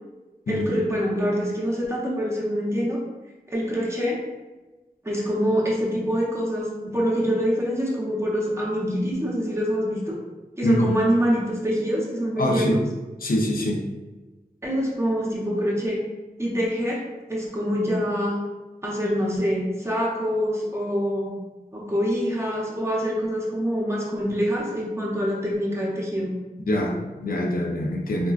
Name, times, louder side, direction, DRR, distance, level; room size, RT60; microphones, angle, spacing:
voice 1, 0.5-3.0 3.5-4.3 5.0-10.2 10.6-12.8 14.6-16.0 16.4-18.5 18.8-21.4 21.7-26.3, equal, 15° right, -4 dB, 0.7 m, -25 dB
voice 2, 10.6-11.0 12.4-12.8 13.2-13.8 26.7-28.3, left 1 dB, 70° left, -1 dB, 0.5 m, -24 dB
3.7 x 2.2 x 2.4 m, 1.2 s
wide cardioid pair, 75°, 16 cm